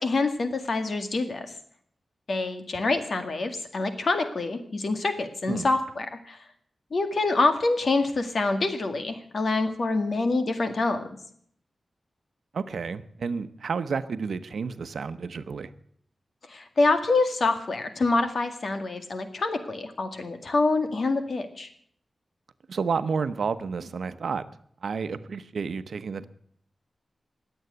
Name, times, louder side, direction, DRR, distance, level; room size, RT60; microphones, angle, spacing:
voice 1, 0.0-1.5 2.3-6.4 6.9-11.1 16.5-21.7, left 3 dB, 55° left, 7 dB, 2.0 m, -26 dB
voice 2, 12.5-15.7 22.7-24.4 24.8-26.2, right 5 dB, 85° right, 12 dB, 0.9 m, -30 dB
21.0 x 8.0 x 8.0 m, 0.62 s
wide cardioid pair, 150°, 0 cm